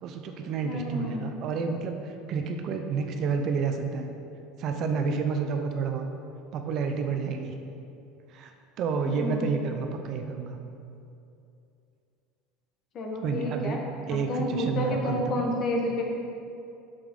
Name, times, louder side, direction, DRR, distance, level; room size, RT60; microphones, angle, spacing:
voice 1, 0.0-4.1 4.6-6.1 6.5-7.5 8.3-8.5 8.8-10.6 13.2-13.8 14.1-15.4, right 5 dB, 40° right, 5 dB, 0.5 m, -30 dB
voice 2, 0.6-1.3 9.0-9.5 12.9-13.8 14.1-16.0, left 1 dB, 35° left, 0 dB, 1.1 m, -30 dB
8.0 x 6.9 x 3.8 m, 2.7 s
cardioid pair, 160°, 0 cm